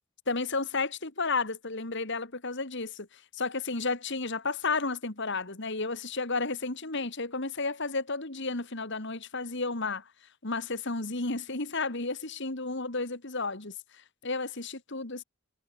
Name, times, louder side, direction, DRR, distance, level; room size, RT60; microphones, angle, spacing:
voice 1, 0.3-10.1 10.4-15.2, left 3 dB, 55° left, 2.3 m, -32 dB
head